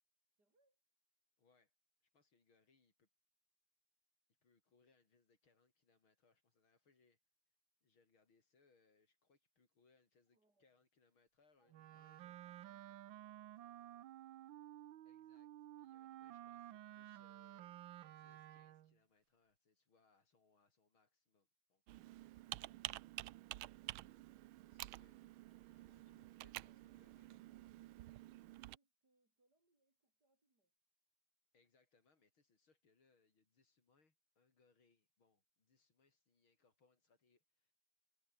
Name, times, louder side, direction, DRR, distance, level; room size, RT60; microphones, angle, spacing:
voice 1, 0.3-0.8 10.3-10.9 11.6-14.2 16.0-16.1 26.4-26.8 27.2-30.8, right 2 dB, 50° right, 6.9 m, -82 dB
voice 2, 1.4-1.7 2.0-3.1 4.4-7.2 7.5-12.2 15.0-22.2 24.5-27.4 31.5-37.7, left 4 dB, 80° left, 4.8 m, -77 dB
Wind instrument woodwind instrument, 11.7-19.0, right 13 dB, 75° right, 1.6 m, -54 dB
Computer keyboard, 21.9-28.8, right 16 dB, 90° right, 1.5 m, -50 dB
omnidirectional pair, 2.2 m